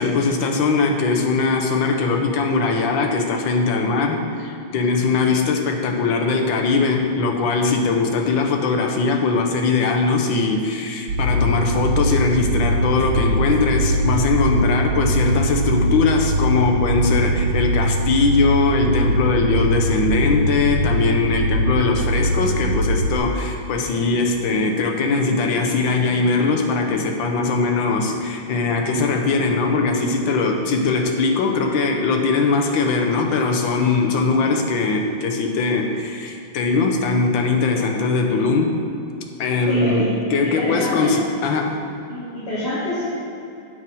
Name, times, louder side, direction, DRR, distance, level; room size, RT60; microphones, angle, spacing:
voice 1, 0.0-38.8 39.4-41.8, left 4 dB, 70° left, 3 dB, 1.5 m, -20 dB
sound 1, 11.1-23.2, right 1 dB, 55° right, 1.9 m, -21 dB
voice 2, 39.7-40.1 40.4-41.1 42.1-43.1, left 1 dB, 30° left, -10 dB, 1.8 m, -26 dB
8.3 x 4.8 x 5.3 m, 2.7 s
omnidirectional pair, 2.3 m